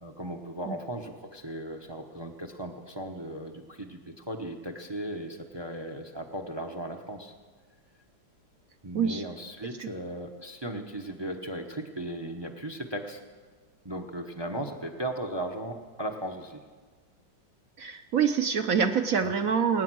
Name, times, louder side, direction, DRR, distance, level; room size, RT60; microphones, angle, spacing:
voice 1, 0.0-7.3 8.8-13.2 13.8-16.6 19.2-19.4, right 1 dB, 25° right, 4 dB, 0.5 m, -37 dB
voice 2, 17.8-19.8, right 7 dB, 60° right, 7 dB, 0.9 m, -26 dB
25.0 x 9.1 x 6.1 m, 1.5 s
omnidirectional pair, 2.0 m